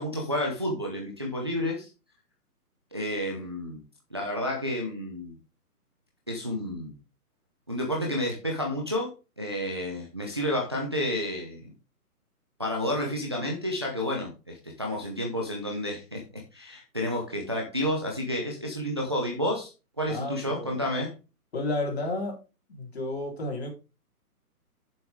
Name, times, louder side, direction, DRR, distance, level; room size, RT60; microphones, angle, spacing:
voice 1, 0.0-1.9 2.9-3.8 4.1-5.4 6.3-6.9 7.7-11.7 12.6-16.2 16.5-19.7 20.0-21.1, left 1 dB, 15° right, -1 dB, 0.7 m, -30 dB
voice 2, 20.1-20.7 21.5-22.4 22.7-23.7, left 2 dB, 40° left, 0 dB, 4.0 m, -31 dB
8.8 x 7.3 x 3.6 m, 0.30 s
hypercardioid pair, 175°, 46 cm